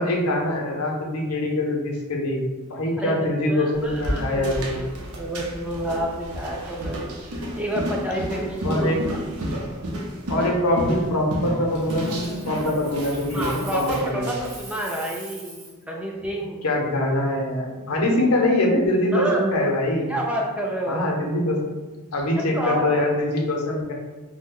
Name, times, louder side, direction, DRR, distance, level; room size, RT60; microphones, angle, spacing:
voice 1, 0.0-2.4 2.7-4.8 8.6-9.0 10.3-14.4 16.6-20.1 20.9-21.7 22.1-23.9, left 1 dB, 90° left, 0 dB, 0.6 m, -23 dB
voice 2, 3.5-4.9 5.2-7.0 7.4-9.0 13.3-16.6 19.1-19.5 20.1-21.0 22.5-22.9, right 1 dB, 5° right, -2 dB, 0.3 m, -29 dB
sound 1, 3.7-14.6, equal, 90° right, 0.6 m, -31 dB
Coin (dropping), 11.7-14.1 14.4-15.8 18.7-18.9, right 2 dB, 30° right, 0.9 m, -43 dB
2.7 x 2.1 x 3.6 m, 1.2 s
head